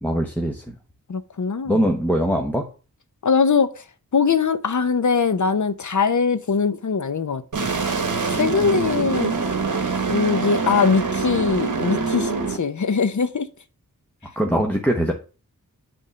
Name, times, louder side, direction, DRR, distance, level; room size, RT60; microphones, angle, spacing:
voice 1, 0.0-0.7 1.7-2.7 14.4-15.1, equal, 5° left, 1.0 m, -22 dB
voice 2, 1.1-1.8 3.2-3.8 4.1-7.7 8.3-9.3 10.1-13.5, left 5 dB, 55° left, 0.8 m, -21 dB
sound 1, 7.5-12.6, right 4 dB, 60° right, 1.4 m, -24 dB
8.4 x 3.7 x 6.8 m
wide cardioid pair, 85°, 35 cm